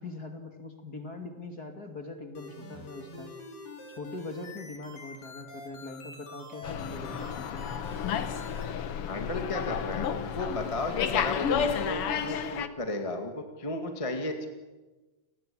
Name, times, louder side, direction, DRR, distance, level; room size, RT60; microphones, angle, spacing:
voice 1, 0.0-3.3 3.9-7.7, left 2 dB, 30° left, 5 dB, 2.5 m, -42 dB
sound 1, 2.3-8.6, left 3 dB, 90° left, 5.8 m, -46 dB
Slam, 6.6-12.7, left 8 dB, 60° left, 1.7 m, -31 dB
voice 2, 9.1-14.5, left 2 dB, 10° left, 4 dB, 1.8 m, -34 dB
30.0 x 19.0 x 8.7 m, 1.2 s
omnidirectional pair, 3.7 m